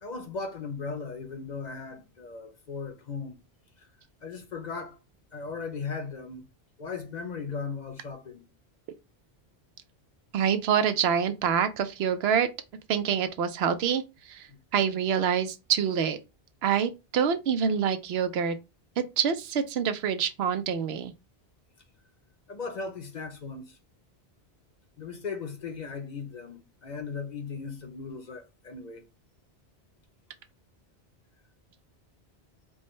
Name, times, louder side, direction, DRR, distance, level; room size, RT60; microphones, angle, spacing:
voice 1, 0.0-3.4 3.8-3.9 4.2-5.0 5.3-6.4 6.8-8.5 14.5-14.6 22.5-23.8 25.0-29.1, left 5 dB, 50° left, 0.7 m, -37 dB
voice 2, 10.3-12.5 12.9-14.0 14.3-14.5 14.7-16.2 16.6-18.5 19.0-21.1, right 7 dB, 80° right, 0.8 m, -26 dB
4.7 x 2.1 x 3.0 m
omnidirectional pair, 1.1 m